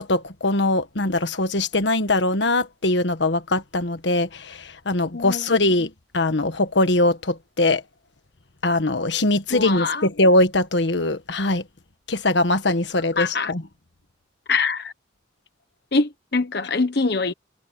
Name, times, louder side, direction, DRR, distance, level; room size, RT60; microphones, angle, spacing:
voice 1, 0.0-7.8 8.6-11.6 12.1-13.6, left 2 dB, 75° left, 1.5 m, -21 dB
voice 2, 5.1-5.4 9.5-10.1 13.2-13.5 14.5-14.9 15.9-17.3, left 4 dB, 60° left, 1.2 m, -24 dB
head